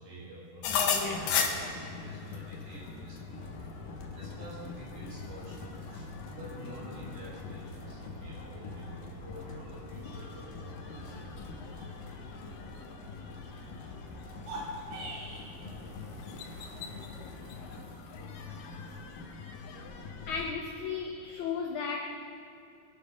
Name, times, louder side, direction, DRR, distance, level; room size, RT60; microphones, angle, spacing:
voice 1, 0.0-3.4 4.1-11.4, equal, 55° right, -5 dB, 6.3 m, -47 dB
sound 1, 0.6-20.5, left 6 dB, 65° left, 2.5 m, -39 dB
sound 2, 3.3-17.8, left 2 dB, 45° left, 5.8 m, -49 dB
sound 3, 14.3-15.5, right 1 dB, 85° right, 4.7 m, -40 dB
voice 2, 20.3-22.1, left 5 dB, 85° left, 2 dB, 1.6 m, -34 dB
22.5 x 11.0 x 5.1 m, 2.5 s
omnidirectional pair, 4.6 m